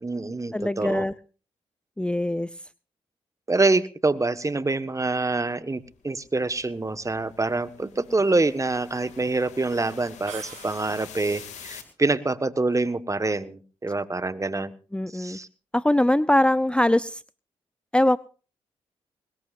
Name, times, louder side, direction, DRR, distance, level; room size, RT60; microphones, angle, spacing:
voice 1, 0.0-1.0 3.5-14.7 15.1-15.5, right 3 dB, 25° right, 12 dB, 1.5 m, -26 dB
voice 2, 0.5-1.1 2.0-2.5 14.9-15.4 15.7-17.2 17.9-18.2, left 1 dB, 10° left, 16 dB, 0.6 m, -22 dB
sound 1, 5.8-11.8, left 8 dB, 85° left, 2.5 m, -46 dB
sound 2, 10.3-11.4, right 10 dB, 85° right, 2.3 m, -43 dB
20.5 x 20.0 x 2.6 m, 0.37 s
supercardioid pair, 45°, 12 cm